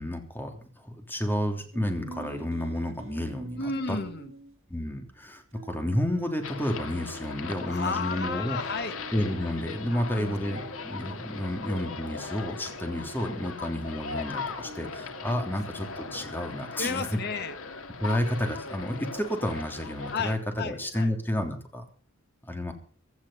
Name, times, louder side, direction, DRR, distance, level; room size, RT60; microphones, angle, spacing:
voice 1, 0.0-4.0 4.7-8.6 9.1-17.2 18.0-21.8 22.4-22.7, left 1 dB, 10° left, 5 dB, 3.2 m, -31 dB
sound 1, 1.7-5.2 5.5-11.9 12.4-18.6 19.2-21.2, right 1 dB, 70° right, 2.4 m, -49 dB
voice 2, 3.6-4.3 7.7-9.0 9.9-10.4 16.8-17.6 20.1-21.1, left 4 dB, 55° left, 9 dB, 1.8 m, -33 dB
sound 2, 6.4-20.4, left 4 dB, 85° left, 2.1 m, -39 dB
16.5 x 13.5 x 5.7 m, 0.42 s
head